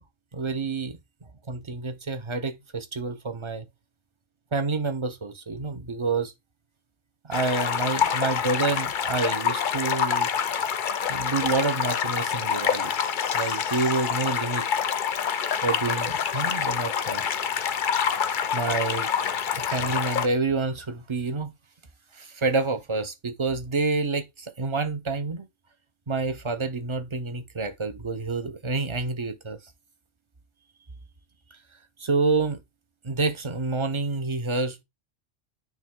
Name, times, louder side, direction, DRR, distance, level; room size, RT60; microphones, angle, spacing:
voice 1, 0.3-3.7 4.5-6.3 7.2-10.3 11.1-12.9 13.3-14.6 15.6-17.4 18.5-19.1 19.6-21.5 22.1-25.5 26.1-29.6 32.0-32.6 33.0-34.8, right 3 dB, 30° right, 0.7 m, -28 dB
sound 1, 7.3-20.3, left 7 dB, 50° left, 0.6 m, -26 dB
9.2 x 3.3 x 3.7 m
omnidirectional pair, 1.3 m